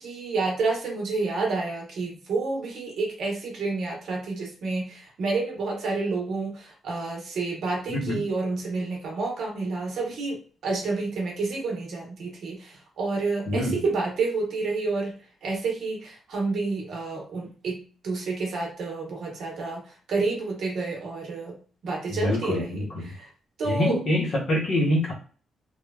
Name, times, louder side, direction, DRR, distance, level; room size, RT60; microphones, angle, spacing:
voice 1, 0.0-15.1 15.4-19.8 20.1-23.3 23.6-24.0, right 3 dB, 55° right, -1 dB, 0.9 m, -29 dB
voice 2, 7.9-8.2 13.5-13.8 22.1-23.1 23.6-25.1, left 1 dB, 45° left, -2 dB, 0.8 m, -25 dB
3.1 x 2.2 x 2.2 m, 0.40 s
wide cardioid pair, 175°, 0 cm